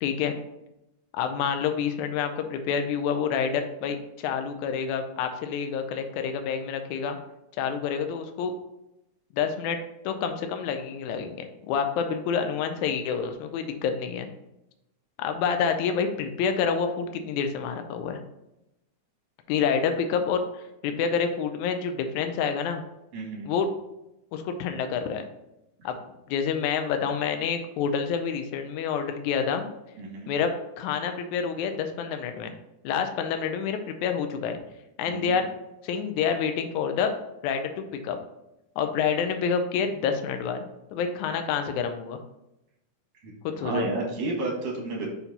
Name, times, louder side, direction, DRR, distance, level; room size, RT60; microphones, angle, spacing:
voice 1, 0.0-0.3 1.1-7.2 7.6-8.5 9.3-9.8 10.0-14.3 15.2-18.2 19.5-22.8 23.5-23.7 24.3-25.2 25.8-26.0 26.3-29.7 30.3-30.5 30.8-32.5 32.8-34.6 35.0-35.4 35.8-37.1 37.4-38.2 38.8-40.7 40.9-42.2 43.4-43.9, left 6 dB, 80° left, 7 dB, 1.9 m, -28 dB
voice 2, 23.1-23.5 30.0-30.3 35.1-35.4 43.2-45.1, right 3 dB, 60° right, -2 dB, 2.6 m, -31 dB
5.9 x 4.1 x 4.0 m, 0.89 s
omnidirectional pair, 3.7 m